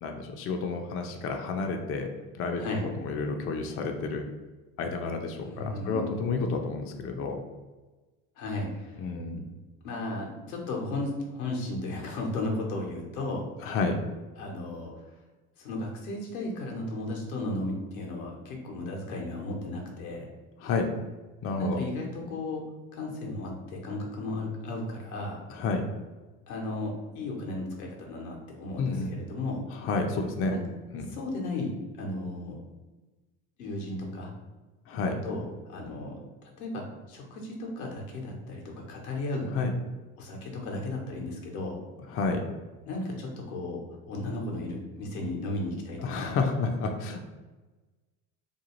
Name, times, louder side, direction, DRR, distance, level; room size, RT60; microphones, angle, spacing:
voice 1, 0.0-2.1 2.3-2.6 3.0-4.2 4.8-7.4 9.0-9.5 13.6-14.0 20.6-20.9 21.4-21.8 25.5-25.9 28.8-29.1 29.7-30.5 30.9-31.2 34.9-35.1 39.5-39.7 42.1-42.4 46.0-47.2, left 4 dB, 35° left, 3 dB, 0.4 m, -30 dB
voice 2, 5.4-6.1 8.4-9.0 9.3-9.4 9.8-13.5 14.4-14.9 15.6-20.3 21.6-22.6 22.9-25.4 26.5-29.6 30.5-30.6 31.1-32.6 33.6-34.3 35.0-39.5 40.2-41.8 42.9-43.8 44.1-46.3, left 2 dB, 85° left, -1 dB, 0.8 m, -35 dB
2.6 x 2.3 x 2.9 m, 1.2 s
hypercardioid pair, 75°, 42 cm